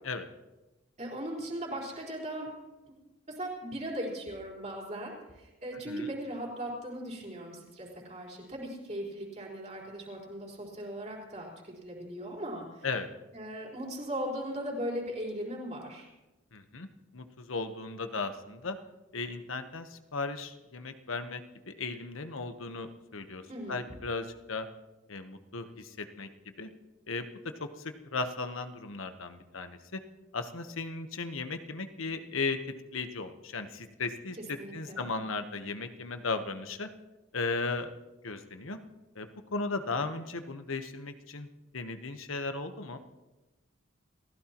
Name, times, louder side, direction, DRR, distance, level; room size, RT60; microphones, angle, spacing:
voice 1, 1.0-2.5 2.9-3.0 3.3-12.9 13.3-16.1 23.5-23.9 34.6-35.1, right 1 dB, 35° right, -2 dB, 4.4 m, -38 dB
voice 2, 16.5-16.9 17.1-18.8 19.1-23.4 23.7-24.7 25.1-26.3 26.6-26.7 27.1-27.2 27.6-30.0 30.3-32.6 32.9-34.4 34.7-36.9 37.3-37.9 38.2-38.8 39.2-41.5 41.7-43.0, left 3 dB, 80° left, 8 dB, 1.1 m, -36 dB
29.5 x 15.5 x 3.0 m, 1.1 s
head